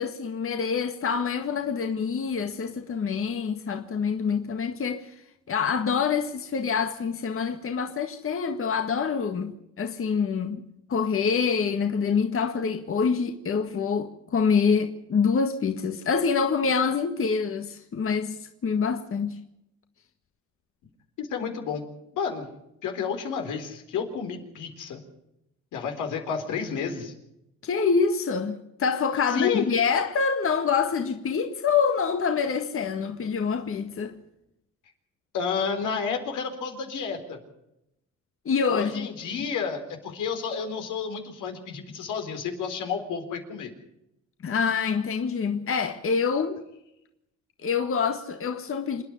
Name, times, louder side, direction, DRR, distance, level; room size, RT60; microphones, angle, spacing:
voice 1, 0.0-5.2 5.5-10.6 10.9-19.4 27.6-34.2 38.5-39.1 44.4-46.6 47.6-49.0, left 6 dB, 45° left, 1.7 m, -26 dB
voice 2, 21.2-21.9 22.1-22.5 22.8-25.0 25.7-27.1 29.3-29.7 35.3-37.4 38.7-43.7, left 6 dB, 85° left, 4.1 m, -30 dB
27.5 x 10.0 x 9.8 m
cardioid pair, 90°, 30 cm